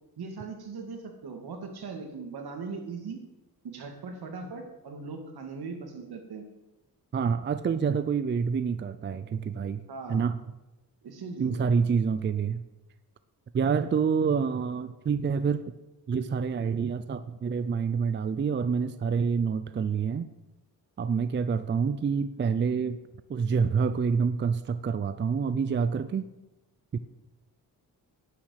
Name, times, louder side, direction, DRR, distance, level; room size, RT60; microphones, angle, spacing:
voice 1, 0.2-3.2 3.6-6.4 9.9-10.2 11.0-11.6, right 4 dB, 75° right, 4 dB, 2.4 m, -39 dB
voice 2, 7.1-9.8 10.1-10.4 11.4-12.6 13.5-15.6 16.1-20.3 21.0-23.0 23.3-26.3 26.9-27.0, right 6 dB, 30° right, 12 dB, 0.4 m, -27 dB
11.0 x 7.4 x 9.5 m, 1.0 s
wide cardioid pair, 175°, 38 cm